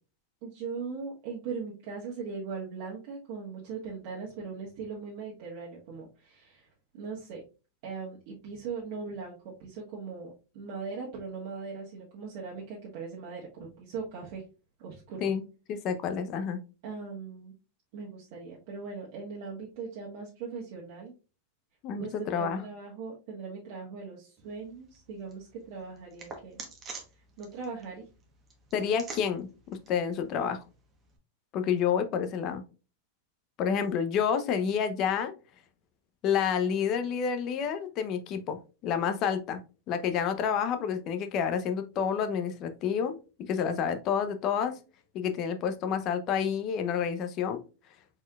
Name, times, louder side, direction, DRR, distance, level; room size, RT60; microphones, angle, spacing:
voice 1, 0.4-6.7 6.9-7.4 7.8-14.4 14.8-15.3 16.8-17.5 17.9-21.1 22.0-26.6 27.4-28.0, right 5 dB, 50° right, -4 dB, 1.4 m, -39 dB
voice 2, 15.2-16.6 21.8-22.7 28.7-30.6 31.5-32.6 33.6-35.3 36.2-39.6 39.9-44.8 45.1-47.6, left 7 dB, 35° left, 9 dB, 0.6 m, -29 dB
sound 1, 24.4-31.2, right 4 dB, 20° right, 1.0 m, -49 dB
4.3 x 4.2 x 2.3 m, 0.32 s
supercardioid pair, 160°, 0 cm